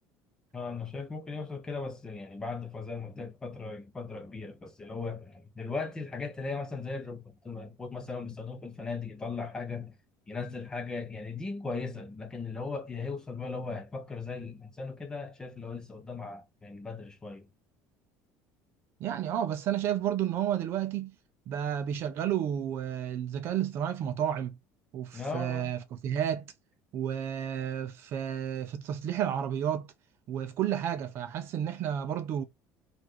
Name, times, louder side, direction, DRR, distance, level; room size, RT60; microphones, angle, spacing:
voice 1, 0.5-10.0 10.3-17.5 25.1-25.8, left 4 dB, 10° left, 0.7 m, -38 dB
voice 2, 19.0-21.1 21.5-24.5 24.9-26.5 26.9-29.9 30.3-32.4, right 10 dB, 40° right, 0.6 m, -31 dB
4.7 x 2.5 x 3.9 m
cardioid pair, 175°, 6 cm